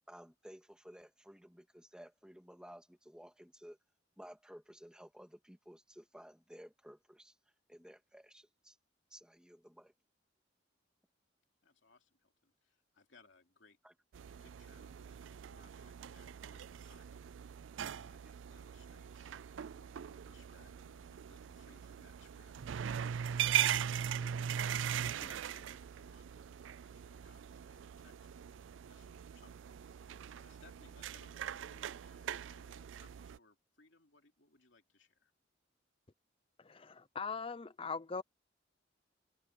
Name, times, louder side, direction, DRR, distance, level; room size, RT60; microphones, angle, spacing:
voice 1, 0.1-3.8 4.2-7.4 7.7-8.8 9.1-9.9 13.8-13.9, equal, 5° right, 2.2 m, -55 dB
voice 2, 11.6-13.8 14.4-23.0 23.3-23.8 24.2-24.3 25.0-35.3, left 3 dB, 75° left, 3.2 m, -66 dB
sound 1, 14.1-33.4, right 9 dB, 80° right, 0.4 m, -40 dB
voice 3, 36.6-38.2, left 5 dB, 30° left, 0.7 m, -41 dB
head